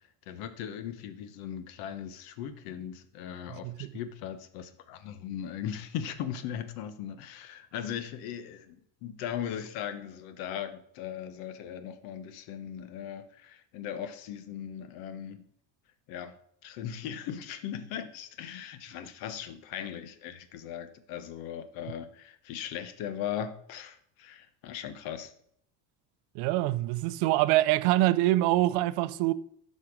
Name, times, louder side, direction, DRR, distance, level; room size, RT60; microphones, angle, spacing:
voice 1, 0.3-15.4 16.1-16.4 16.6-25.3, left 9 dB, 70° left, 1.0 m, -38 dB
voice 2, 3.5-3.9 26.3-29.3, right 16 dB, 85° right, 0.6 m, -25 dB
12.0 x 4.4 x 5.0 m
cardioid pair, 175°, 38 cm